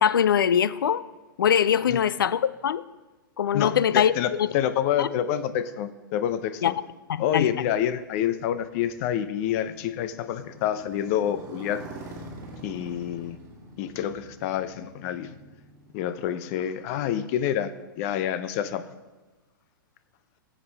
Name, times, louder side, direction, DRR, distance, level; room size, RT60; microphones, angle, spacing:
voice 1, 0.0-1.0 1.4-2.8 3.4-4.5 5.0-5.1 6.6-6.7 7.1-7.5, left 8 dB, 75° left, 16 dB, 0.5 m, -22 dB
voice 2, 3.5-6.7 7.2-11.9 12.6-13.4 13.8-15.3 15.9-17.7 18.0-18.8, left 10 dB, 45° left, 12 dB, 0.8 m, -28 dB
Motorcycle, 8.0-17.7, right 2 dB, 30° right, 2.6 m, -46 dB
18.0 x 7.4 x 3.5 m, 1.2 s
hypercardioid pair, 115°, 11 cm